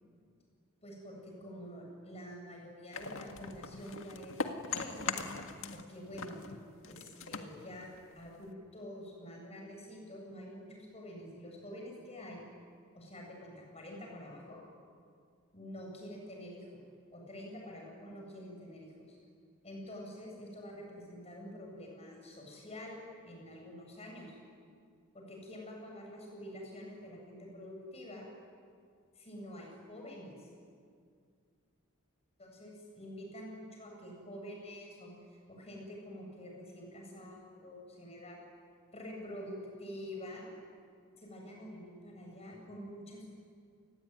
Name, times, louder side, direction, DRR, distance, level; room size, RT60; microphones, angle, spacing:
voice 1, 0.8-5.3 5.7-6.4 6.9-7.9 8.1-12.4 12.9-14.6 15.5-16.8 17.1-19.2 19.6-24.4 25.1-28.3 29.1-30.5 32.4-38.4 38.9-40.5 41.2-43.3, equal, 30° left, 0 dB, 7.7 m, -47 dB
sound 1, 2.9-5.9 6.1-8.5, left 4 dB, 60° left, 1.8 m, -40 dB
28.5 x 21.0 x 9.7 m, 2.2 s
head